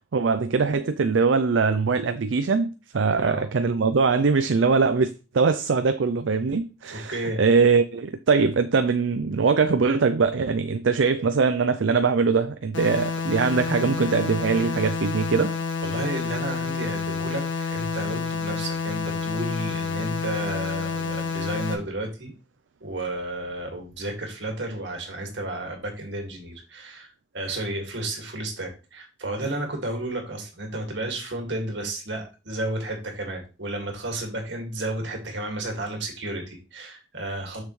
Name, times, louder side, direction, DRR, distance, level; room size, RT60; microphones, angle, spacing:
voice 1, 0.0-15.6, right 5 dB, 85° right, 0.5 m, -22 dB
voice 2, 6.9-7.4 15.8-22.3 22.8-27.1 27.3-37.6, right 1 dB, 70° right, 2.2 m, -32 dB
sound 1, 12.7-21.7, left 5 dB, 85° left, 1.7 m, -29 dB
6.8 x 6.4 x 3.2 m
head